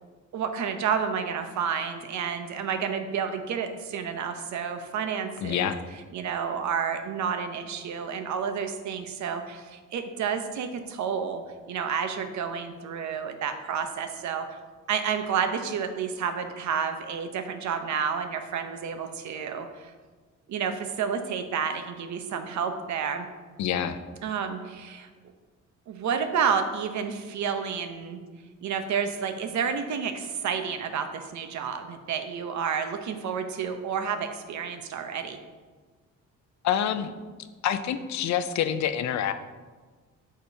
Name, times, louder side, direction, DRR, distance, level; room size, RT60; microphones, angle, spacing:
voice 1, 0.3-5.7 6.1-11.4 11.7-14.5 14.9-19.9 20.5-23.3 24.2-25.1 25.9-28.2 28.6-35.4, right 7 dB, 70° right, 7 dB, 0.8 m, -30 dB
voice 2, 5.4-5.8 23.6-24.0 36.6-37.1 37.6-39.3, left 9 dB, 65° left, 10 dB, 0.5 m, -27 dB
8.7 x 5.0 x 2.8 m, 1.4 s
cardioid pair, 90°, 30 cm